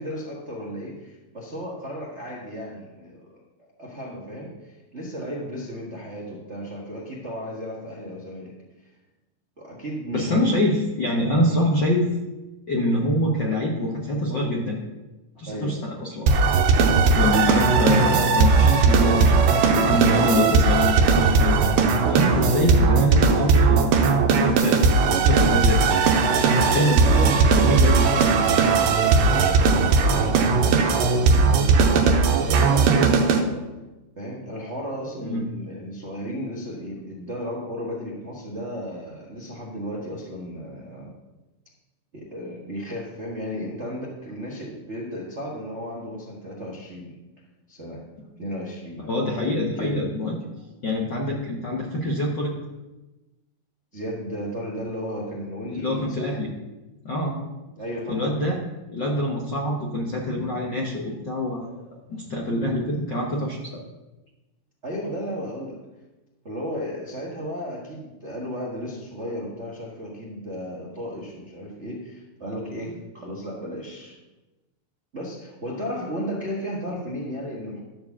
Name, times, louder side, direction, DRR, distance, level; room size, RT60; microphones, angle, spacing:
voice 1, 0.0-3.4 3.8-8.5 9.6-10.5 11.4-11.7 15.5-15.8 26.7-28.1 28.9-33.7 34.2-41.1 42.1-47.1 47.7-48.0 48.4-49.1 49.8-50.0 53.9-56.3 57.8-58.3 64.8-65.8 66.4-74.1 75.1-77.8, equal, 55° right, -4 dB, 0.7 m, -34 dB
voice 2, 10.1-12.2 12.7-14.8 15.4-16.3 17.1-19.4 19.7-21.6 22.1-24.8 25.3-25.9 26.5-28.4 35.2-35.4 49.1-50.3 50.8-52.5 55.7-56.5 57.0-57.4 58.1-58.6 58.9-61.8 62.1-63.7, left 1 dB, 60° left, -2 dB, 1.1 m, -25 dB
sound 1, 16.3-33.4, right 4 dB, 90° right, 2.6 m, -18 dB
12.5 x 4.7 x 7.1 m, 1.1 s
omnidirectional pair, 3.9 m